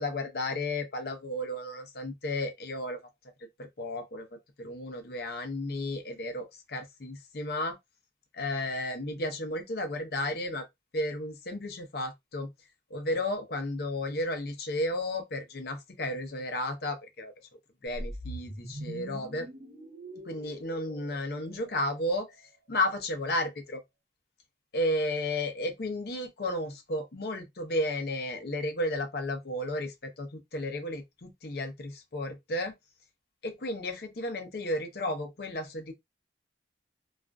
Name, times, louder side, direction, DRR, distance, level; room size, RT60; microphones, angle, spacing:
voice 1, 0.0-3.0 3.6-4.3 4.6-7.8 8.3-10.7 10.9-12.5 12.9-17.3 17.8-19.5 20.3-22.3 22.7-23.8 24.7-32.7 33.4-35.9, left 1 dB, 55° left, 0.6 m, -33 dB
sound 1, 18.0-22.2, right 1 dB, 55° right, 0.9 m, -43 dB
2.4 x 2.4 x 2.2 m
head